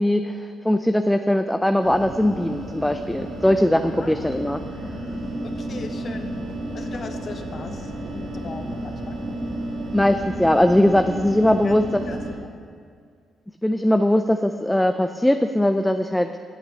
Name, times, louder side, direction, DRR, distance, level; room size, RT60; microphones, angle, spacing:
voice 1, 0.0-4.6 9.9-12.0 13.6-16.4, left 1 dB, 5° left, 7 dB, 0.4 m, -20 dB
sound 1, 1.8-12.3, right 1 dB, 75° right, 2.3 m, -32 dB
voice 2, 4.0-4.4 5.4-6.3 6.7-9.2 11.6-11.8 12.1-12.6, left 4 dB, 50° left, 6 dB, 1.0 m, -39 dB
8.5 x 8.1 x 7.4 m, 2.1 s
cardioid pair, 100°, 0 cm